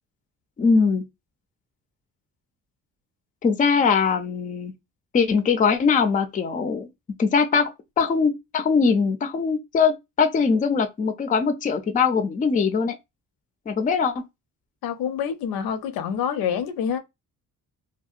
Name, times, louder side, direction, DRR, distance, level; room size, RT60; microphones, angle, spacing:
voice 1, 0.6-1.0 3.4-4.7 5.1-6.9 7.2-7.7 8.0-12.9 13.7-14.1, left 5 dB, 25° left, 0.4 m, -21 dB
voice 2, 14.8-17.0, left 8 dB, 80° left, 0.6 m, -27 dB
2.7 x 2.1 x 2.4 m
cardioid pair, 105°, 35 cm